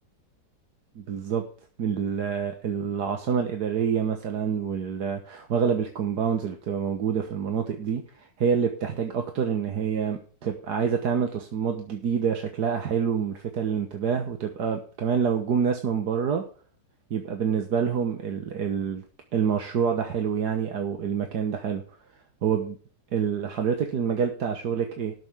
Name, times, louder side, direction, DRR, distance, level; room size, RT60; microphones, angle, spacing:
voice 1, 1.0-1.4 1.8-8.0 8.4-16.4 17.1-19.0 19.3-21.8 22.4-22.8 23.1-25.1, right 7 dB, 60° right, 5 dB, 1.7 m, -27 dB
19.0 x 7.0 x 3.5 m, 0.42 s
omnidirectional pair, 2.0 m